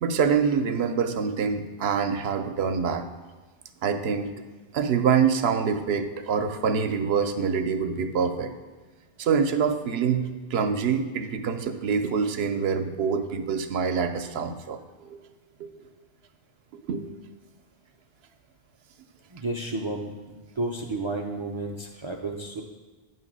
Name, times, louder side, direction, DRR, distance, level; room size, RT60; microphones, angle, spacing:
voice 1, 0.0-3.1 3.8-4.3 4.7-8.5 9.2-15.2 15.6-15.7 16.9-17.1, right 6 dB, 80° right, 8 dB, 0.8 m, -25 dB
voice 2, 19.3-22.6, right 2 dB, 50° right, 1 dB, 0.3 m, -32 dB
8.9 x 3.1 x 6.0 m, 1.3 s
omnidirectional pair, 1.0 m